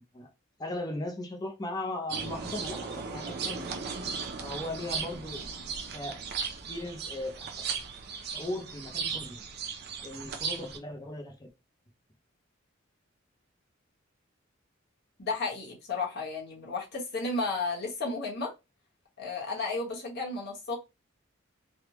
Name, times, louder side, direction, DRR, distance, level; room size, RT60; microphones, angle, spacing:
voice 1, 0.6-3.7 4.4-5.4 5.9-6.2 6.7-7.5 8.2-9.4 10.0-11.5, left 1 dB, 20° left, 0.6 m, -37 dB
sound 1, 2.1-10.8, right 5 dB, 50° right, 0.6 m, -36 dB
voice 2, 15.2-18.5 19.2-20.8, left 3 dB, 55° left, 1.2 m, -33 dB
3.4 x 2.3 x 2.9 m
head